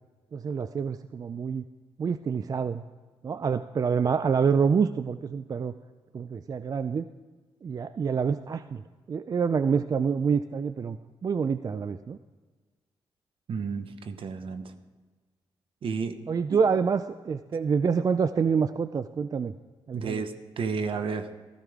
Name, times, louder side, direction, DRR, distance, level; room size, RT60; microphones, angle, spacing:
voice 1, 0.3-1.6 2.0-2.8 3.2-5.7 6.1-7.0 7.6-8.8 9.1-11.0 11.2-12.2 16.3-19.5 19.9-20.2, right 6 dB, 40° right, 12 dB, 0.4 m, -27 dB
voice 2, 13.5-14.7 15.8-16.2 16.5-16.6 19.9-21.3, right 5 dB, 60° right, 9 dB, 1.0 m, -32 dB
15.0 x 14.0 x 3.6 m, 1.3 s
cardioid pair, 85°, 10 cm